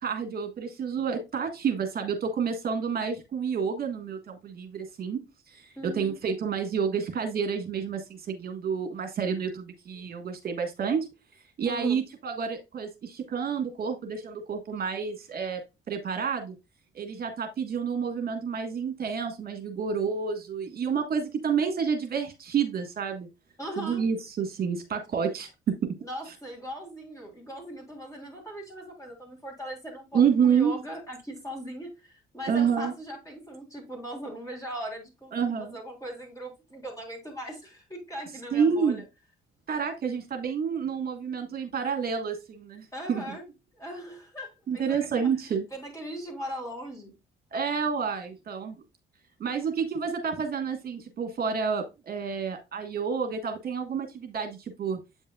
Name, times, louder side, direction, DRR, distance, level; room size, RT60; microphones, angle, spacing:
voice 1, 0.0-5.2 5.5-11.1 11.6-15.6 15.9-16.5 16.9-23.3 23.8-25.9 30.1-30.7 32.5-32.9 35.3-35.7 38.5-39.0 39.7-43.2 44.7-45.7 47.5-48.7 49.4-55.0, right 6 dB, 50° right, 6 dB, 1.5 m, -29 dB
voice 2, 5.7-6.2 11.6-12.0 23.6-24.0 26.0-39.0 42.9-43.4 43.7-45.3 45.7-47.1, equal, 15° left, -1 dB, 3.4 m, -39 dB
8.2 x 5.4 x 2.3 m, 0.24 s
cardioid pair, 90°, 20 cm